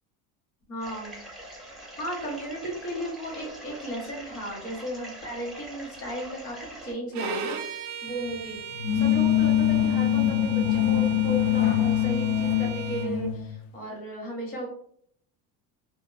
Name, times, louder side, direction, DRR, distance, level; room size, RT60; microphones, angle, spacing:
voice 1, 0.7-1.2 2.0-8.6 8.9-14.7, right 1 dB, 35° left, -1 dB, 1.1 m, -35 dB
sound 1, 0.8-6.9, right 1 dB, ahead, 0.5 m, -43 dB
Bowed string instrument, 7.1-13.1, right 6 dB, 50° right, 0.4 m, -38 dB
sound 2, 8.8-13.5, left 11 dB, 75° left, 0.5 m, -23 dB
2.6 x 2.2 x 2.4 m, 0.63 s
cardioid pair, 140°, 39 cm